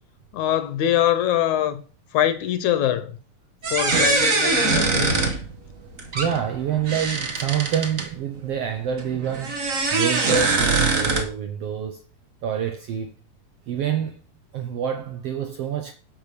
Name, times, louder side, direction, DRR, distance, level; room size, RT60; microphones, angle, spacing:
voice 1, 0.3-1.8 2.1-3.2 3.7-5.2, left 11 dB, 75° left, 2.0 m, -23 dB
sound 1, 3.6-8.1 9.0-11.2, right 3 dB, 45° right, 1.0 m, -23 dB
voice 2, 6.1-9.7 9.9-12.0 12.4-13.1 13.7-14.2 14.5-15.9, right 9 dB, 70° right, 1.5 m, -27 dB
11.0 x 5.3 x 6.8 m
omnidirectional pair, 3.7 m